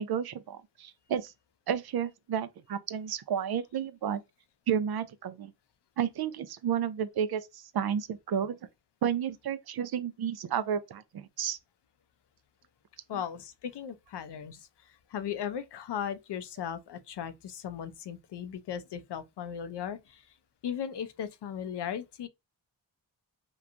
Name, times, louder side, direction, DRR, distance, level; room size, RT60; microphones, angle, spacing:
voice 1, 0.0-1.3 1.7-4.2 4.7-5.5 6.0-8.6 9.0-11.6, right 8 dB, 60° right, 0.5 m, -31 dB
voice 2, 13.1-20.2 20.6-22.3, left 8 dB, 65° left, 0.6 m, -37 dB
3.0 x 2.2 x 2.4 m
cardioid pair, 50°, 44 cm